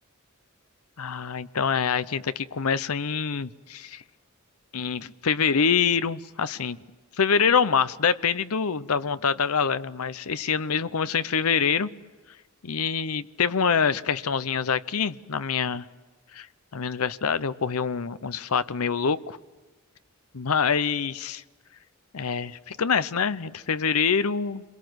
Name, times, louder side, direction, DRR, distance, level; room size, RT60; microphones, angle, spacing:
voice 1, 1.0-4.0 4.7-6.8 7.2-11.9 12.6-15.8 16.3-16.5 16.7-19.4 20.3-21.4 22.1-24.6, left 6 dB, 80° left, 15 dB, 0.7 m, -25 dB
28.5 x 22.5 x 8.0 m, 1.3 s
head